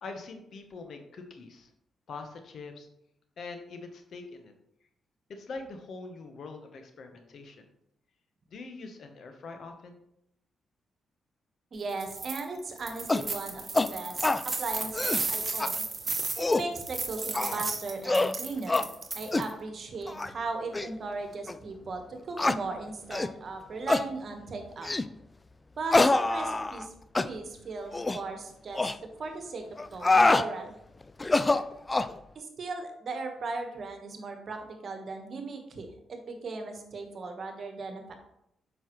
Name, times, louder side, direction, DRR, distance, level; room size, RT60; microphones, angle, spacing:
voice 1, 0.0-1.7 2.1-2.9 3.4-4.5 5.3-7.7 8.5-10.0, left 3 dB, 65° left, 5 dB, 1.1 m, -43 dB
voice 2, 11.7-15.9 16.4-18.8 19.1-24.9 25.8-26.9 27.2-28.9 29.2-30.7 32.3-38.1, right 3 dB, 55° right, 5 dB, 1.3 m, -37 dB
sound 1, 11.9-12.4 12.8-19.5, right 3 dB, 40° right, 0.9 m, -34 dB
sound 2, 13.1-13.3 13.7-13.9 14.2-14.4 14.8-15.2 15.6-15.7 16.2-16.7 17.3-17.6 18.0-18.3 18.7-18.9 19.3-19.5 20.1-20.3 20.7-20.9 21.5-21.6 22.4-22.6 23.1-23.3 23.9-24.1 24.8-25.1 25.9-26.9 27.2-27.3 27.9-28.2 28.8-29.0 29.8-30.5 31.2-32.1, left 2 dB, 25° left, 0.4 m, -25 dB
7.3 x 5.5 x 3.1 m, 0.79 s
supercardioid pair, 50°, 0 cm